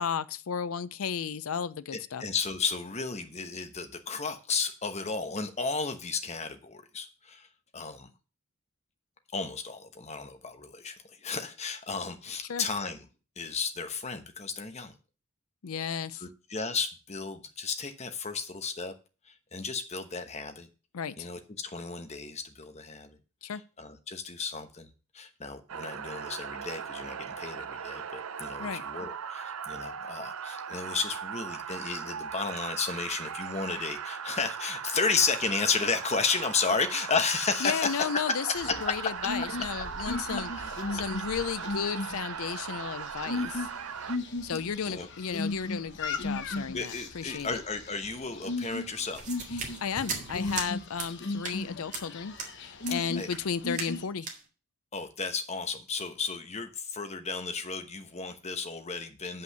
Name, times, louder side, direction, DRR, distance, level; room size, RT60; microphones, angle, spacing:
voice 1, 0.0-2.2 12.5-12.7 15.6-16.2 20.9-21.3 23.4-23.6 28.6-28.8 37.6-40.5 40.9-43.7 44.4-47.6 49.5-54.3, left 7 dB, 70° left, 0.5 m, -34 dB
voice 2, 2.2-7.5 7.7-8.1 9.3-13.1 13.4-15.0 16.2-18.9 19.2-20.7 21.2-23.2 23.4-38.9 43.4-43.6 44.9-45.1 46.6-49.2 52.9-53.3 54.9-59.4, left 4 dB, 30° left, 1.0 m, -33 dB
sound 1, 25.7-44.2, right 7 dB, 70° right, 0.5 m, -38 dB
sound 2, 38.5-54.0, left 3 dB, 50° left, 1.1 m, -37 dB
sound 3, 49.1-50.7 51.0-51.1 51.4-51.6 51.9-52.0 52.4-52.5 52.8-53.0 53.3-53.4 53.7-54.0 54.2-54.4, right 5 dB, 35° right, 2.0 m, -37 dB
7.9 x 5.6 x 6.7 m
head